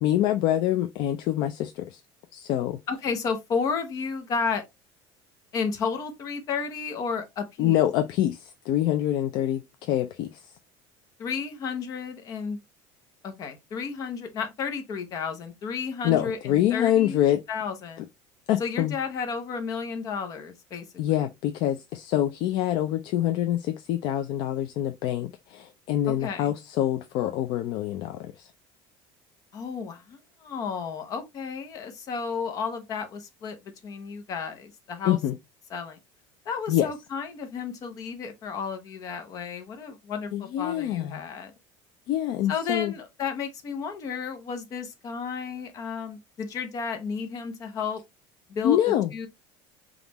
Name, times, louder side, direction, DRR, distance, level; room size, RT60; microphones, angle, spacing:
voice 1, 0.0-2.0 2.3-2.8 7.6-10.5 16.0-17.4 18.5-19.0 21.0-28.5 35.0-35.3 36.7-36.9 40.3-41.2 42.1-42.9 48.6-49.1, left 12 dB, 50° left, 0.4 m, -25 dB
voice 2, 2.9-4.6 5.5-7.8 11.2-12.6 13.2-17.2 17.5-18.1 18.6-20.8 26.1-26.5 29.5-33.6 33.8-35.2 35.7-36.0 36.5-41.5 42.5-48.0 48.5-48.8 49.1-49.3, left 5 dB, 30° left, 0.8 m, -32 dB
5.3 x 2.5 x 2.9 m
cardioid pair, 175°, 11 cm